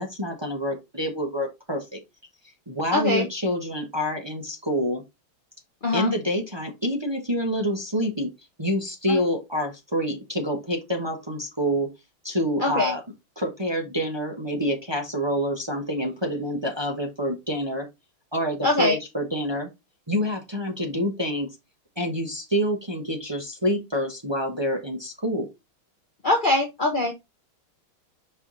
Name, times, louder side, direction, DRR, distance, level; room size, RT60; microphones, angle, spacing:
voice 1, 0.0-2.0 2.7-5.0 5.9-8.3 8.6-11.9 12.2-13.0 13.4-17.9 18.3-19.7 20.1-21.5 22.0-25.5, equal, 20° right, 3 dB, 0.7 m, -27 dB
voice 2, 2.9-3.3 5.8-6.1 9.1-9.2 12.6-12.9 18.6-19.0 26.2-27.1, left 2 dB, 75° left, 3 dB, 0.4 m, -22 dB
5.5 x 4.6 x 3.8 m, 0.22 s
omnidirectional pair, 2.3 m